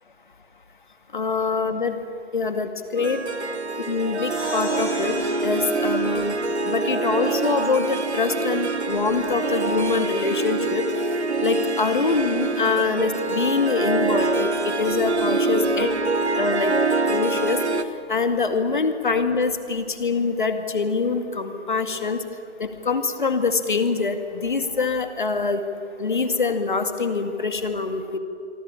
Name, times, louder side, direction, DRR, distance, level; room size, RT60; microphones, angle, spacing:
voice 1, 1.1-2.0 2.3-3.2 3.9-5.2 5.4-6.4 6.6-10.8 11.4-15.9 16.4-16.7 17.1-17.6 18.1-22.2 22.6-25.6 26.0-28.2, left 4 dB, 40° left, 8 dB, 2.2 m, -24 dB
Harp, 3.0-17.8, right 3 dB, 65° right, 1.7 m, -25 dB
sound 1, 4.3-7.6, left 3 dB, 5° left, 0.8 m, -38 dB
27.0 x 23.5 x 8.6 m, 2.5 s
figure-of-eight pair, 160°, 36 cm